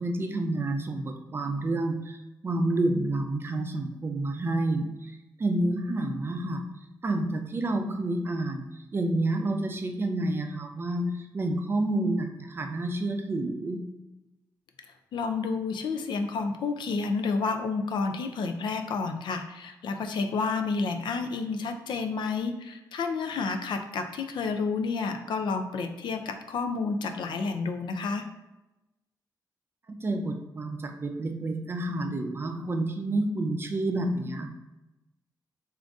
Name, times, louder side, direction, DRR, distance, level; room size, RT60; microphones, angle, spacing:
voice 1, 0.0-4.9 5.4-6.7 7.0-8.7 8.9-13.8 30.0-34.5, right 2 dB, 30° right, 4 dB, 0.4 m, -29 dB
voice 2, 15.1-28.2, left 4 dB, 80° left, 6 dB, 0.4 m, -30 dB
3.8 x 2.5 x 3.5 m, 0.98 s
wide cardioid pair, 130°, 8 cm